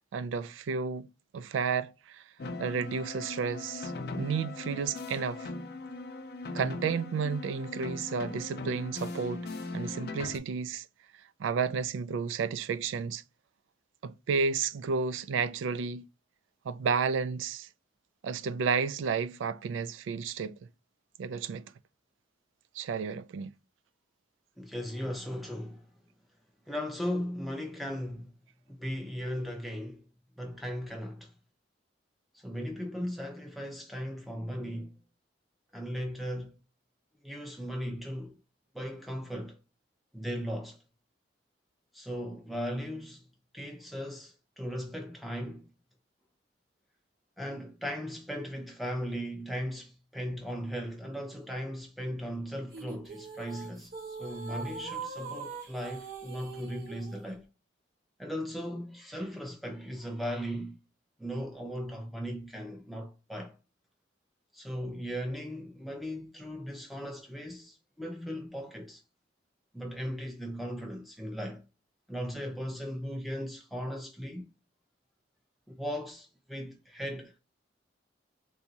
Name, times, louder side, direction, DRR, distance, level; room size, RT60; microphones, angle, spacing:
voice 1, 0.1-1.1 1.3-2.2 2.6-5.5 6.5-9.5 9.7-10.9 11.4-13.2 14.0-16.1 16.7-17.7 18.2-20.5 21.2-21.6 22.7-23.5, right 5 dB, 85° right, 0.3 m, -32 dB
sound 1, 2.4-10.4, left 3 dB, 55° left, 0.4 m, -39 dB
voice 2, 24.6-25.9 26.7-28.3 28.7-30.1 30.4-31.3 32.3-35.0 35.7-36.6 37.2-38.4 38.7-39.6 40.1-40.8 41.9-43.3 43.5-45.7 47.4-57.4 58.2-60.8 61.2-63.5 64.5-69.0 69.7-71.6 72.1-74.5 75.7-77.4, equal, ahead, 0.7 m, -37 dB
sound 2, 52.7-57.2, right 4 dB, 50° right, 1.1 m, -42 dB
3.4 x 2.7 x 2.8 m
head